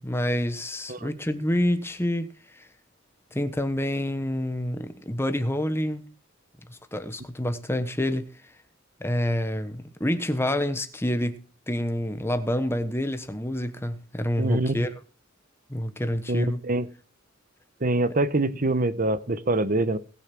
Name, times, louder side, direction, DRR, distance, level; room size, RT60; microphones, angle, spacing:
voice 1, 0.0-2.7 3.3-6.0 6.7-8.3 9.0-14.9 15.7-16.6, left 1 dB, 10° left, 1.2 m, -28 dB
voice 2, 14.4-14.8 16.3-16.9 17.8-20.0, right 2 dB, 40° right, 1.0 m, -25 dB
19.0 x 6.8 x 6.0 m
head